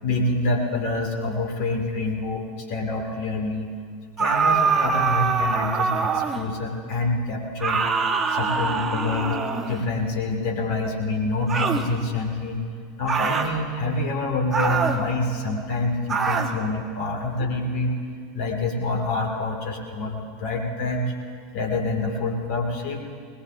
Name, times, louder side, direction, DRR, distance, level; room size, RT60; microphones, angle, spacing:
voice 1, 0.0-3.7 4.2-12.6 13.0-17.9 18.3-21.0 21.5-23.0, left 2 dB, 55° left, 2 dB, 2.1 m, -27 dB
sound 1, 4.2-6.5 7.6-9.9 11.5-11.9 13.1-13.5 14.5-15.0 16.1-16.6, right 5 dB, 25° right, 1.3 m, -24 dB
21.0 x 20.0 x 2.5 m, 2.1 s
figure-of-eight pair, 80°, 0 cm